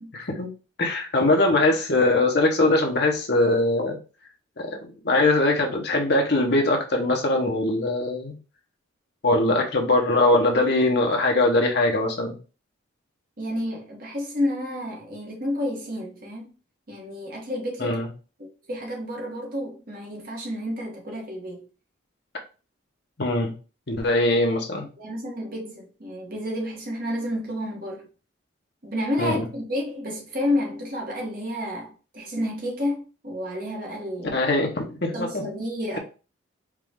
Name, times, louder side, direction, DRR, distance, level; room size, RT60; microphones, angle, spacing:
voice 1, 0.1-0.5 0.8-4.0 4.6-4.8 5.0-8.3 9.2-12.3 17.8-18.1 23.2-23.5 23.9-24.9 29.2-29.5 34.3-35.5, left 2 dB, 55° left, 1.0 m, -21 dB
voice 2, 13.4-16.5 16.9-18.0 18.4-21.7 25.0-28.1 28.8-34.4 35.1-36.0, left 1 dB, 45° right, 1.2 m, -30 dB
4.7 x 2.4 x 3.5 m
head